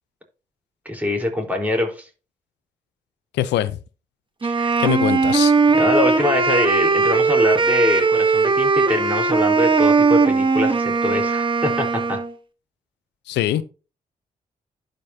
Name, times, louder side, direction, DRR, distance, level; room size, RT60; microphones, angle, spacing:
voice 1, 0.8-2.1 4.4-4.8 5.7-12.2, left 1 dB, 10° right, 4.1 m, -24 dB
voice 2, 3.3-3.8 4.8-5.5 13.3-13.6, left 13 dB, 80° left, 0.6 m, -22 dB
Wind instrument woodwind instrument, 4.4-12.3, right 4 dB, 30° right, 1.2 m, -18 dB
11.5 x 5.3 x 2.8 m
hypercardioid pair, 45°, 18 cm